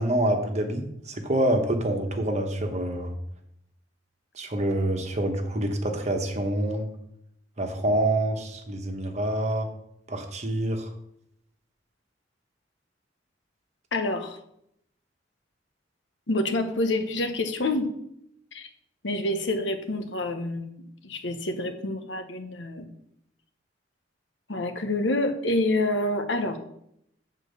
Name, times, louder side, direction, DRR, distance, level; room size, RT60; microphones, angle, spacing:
voice 1, 0.0-3.1 4.3-6.9 7.6-9.7 10.1-10.9, right 1 dB, 40° right, 4 dB, 1.2 m, -26 dB
voice 2, 13.9-14.4 16.3-17.9 18.5-18.7 19.0-22.9 24.5-26.6, left 2 dB, 80° left, 7 dB, 1.0 m, -27 dB
8.3 x 4.5 x 6.7 m, 0.75 s
head